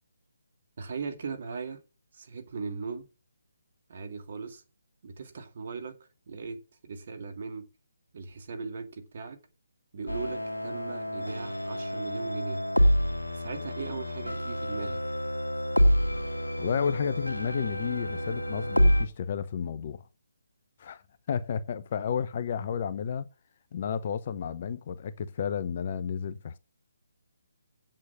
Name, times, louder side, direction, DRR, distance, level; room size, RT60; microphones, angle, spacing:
voice 1, 0.8-1.8 2.1-3.1 3.9-4.6 5.0-6.0 6.3-7.7 8.1-9.4 9.9-12.6 13.3-15.0, right 5 dB, 45° right, 2.3 m, -38 dB
sound 1, 10.1-19.1, equal, 85° left, 2.1 m, -27 dB
voice 2, 16.6-20.0 20.8-21.0 21.3-23.3 23.7-26.6, left 7 dB, 40° left, 0.9 m, -32 dB
8.4 x 7.5 x 7.4 m
figure-of-eight pair, 145°, 0 cm